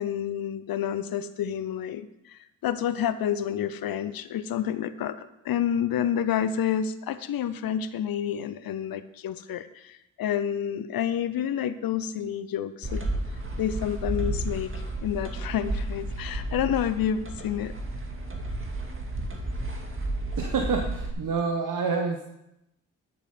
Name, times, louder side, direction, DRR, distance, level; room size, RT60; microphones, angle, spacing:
voice 1, 0.0-13.0 13.6-17.7, left 9 dB, 60° left, 13 dB, 0.8 m, -29 dB
sound 1, 12.8-21.1, right 1 dB, 30° right, 2.2 m, -32 dB
voice 2, 20.4-22.2, right 4 dB, 50° right, 3 dB, 1.4 m, -27 dB
11.5 x 6.7 x 5.2 m, 0.85 s
hypercardioid pair, 45°, 40 cm